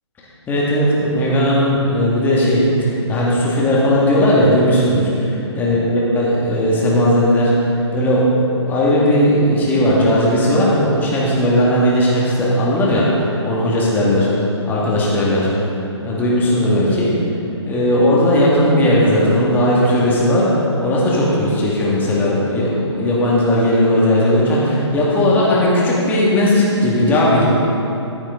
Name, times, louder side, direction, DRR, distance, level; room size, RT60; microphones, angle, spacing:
voice 1, 0.5-7.5 7.9-14.3 14.7-15.5 16.0-17.1 17.6-27.5, left 1 dB, 10° left, -6 dB, 2.1 m, -16 dB
14.0 x 8.8 x 3.9 m, 2.8 s
figure-of-eight pair, 140°, 15 cm